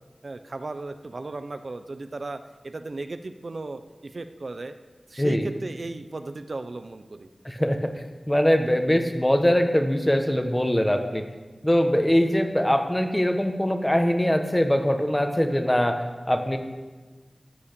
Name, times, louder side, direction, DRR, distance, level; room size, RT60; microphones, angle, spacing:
voice 1, 0.2-4.7 5.1-7.3, right 2 dB, 65° right, 9 dB, 0.7 m, -36 dB
voice 2, 5.2-5.5 7.4-7.9 8.3-11.2 11.6-16.0 16.3-16.6, equal, 15° left, 5 dB, 1.4 m, -22 dB
14.0 x 8.5 x 6.9 m, 1.3 s
wide cardioid pair, 65°, 0 cm